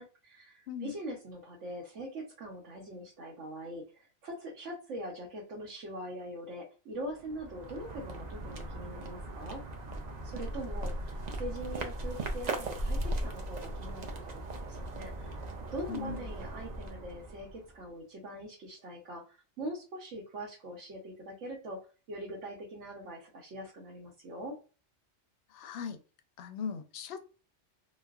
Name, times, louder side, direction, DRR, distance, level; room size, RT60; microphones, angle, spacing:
voice 1, 0.0-9.6 10.2-15.4 15.7-21.8 22.1-24.6, right 1 dB, 85° right, -4 dB, 1.2 m, -42 dB
sound 1, 7.1-17.8, right 1 dB, 60° right, 0.4 m, -38 dB
voice 2, 15.9-16.3 25.5-26.0 26.4-27.2, left 6 dB, 60° left, 7 dB, 0.6 m, -39 dB
3.0 x 2.1 x 2.3 m, 0.34 s
omnidirectional pair, 1.2 m